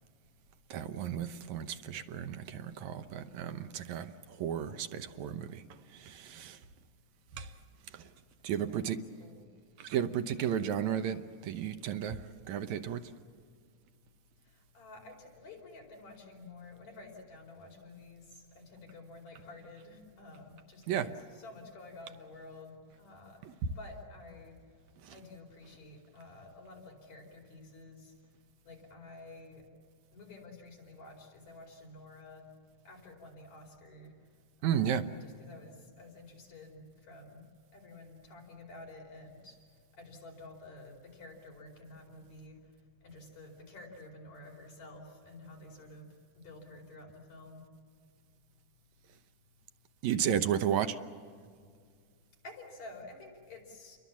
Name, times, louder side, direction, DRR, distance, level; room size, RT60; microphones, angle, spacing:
voice 1, 0.7-4.1 4.4-5.6 6.0-6.6 7.4-7.5 8.4-9.0 9.8-12.2 12.5-13.0 20.9-21.1 34.6-35.0 50.0-51.0, right 9 dB, 75° right, 9 dB, 2.2 m, -33 dB
voice 2, 8.7-9.5 14.7-23.4 23.8-24.6 25.1-28.1 28.7-29.6 30.1-32.4 32.8-34.1 34.6-37.4 37.7-39.6 40.0-42.6 43.0-46.1 46.4-47.6 52.4-54.0, left 2 dB, 65° left, 0 dB, 6.0 m, -51 dB
29.5 x 22.5 x 7.3 m, 2.1 s
omnidirectional pair, 3.5 m